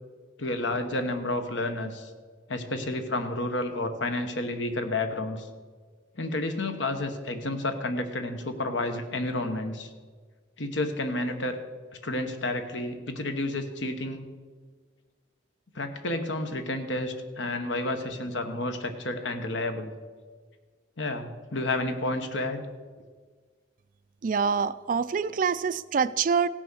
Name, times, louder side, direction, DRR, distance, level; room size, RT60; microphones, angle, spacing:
voice 1, 0.4-2.1 2.5-5.5 6.2-9.9 10.6-11.6 12.0-14.2 15.7-19.9 21.0-22.6, left 2 dB, 70° left, 7 dB, 1.2 m, -30 dB
voice 2, 24.2-26.5, right 6 dB, 45° right, 15 dB, 0.3 m, -25 dB
17.0 x 6.1 x 6.3 m, 1.5 s
head